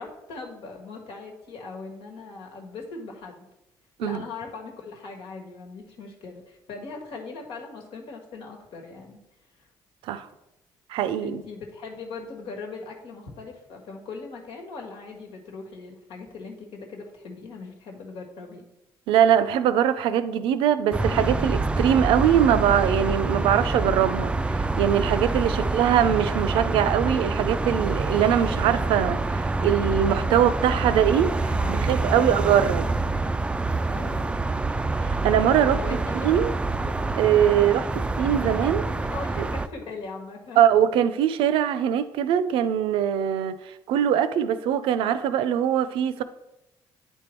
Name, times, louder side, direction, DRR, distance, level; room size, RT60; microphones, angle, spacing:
voice 1, 0.0-3.5 4.0-9.2 9.6-9.7 11.2-18.6 25.5-25.7 31.4-32.4 33.9-34.4 35.6-36.3 36.8-37.2 37.5-37.9 38.4-38.5 39.0-40.6, left 4 dB, 75° left, 1 dB, 1.5 m, -40 dB
voice 2, 10.9-11.4 19.1-31.3 31.9-32.9 35.0-35.8 36.1-36.5 37.1-37.9 38.2-38.8 39.4-39.5 40.6-46.2, right 9 dB, 80° right, 12 dB, 0.5 m, -22 dB
sound 1, 20.9-39.7, right 3 dB, 10° right, 0.3 m, -26 dB
9.2 x 3.5 x 4.4 m, 0.93 s
supercardioid pair, 80°, 9 cm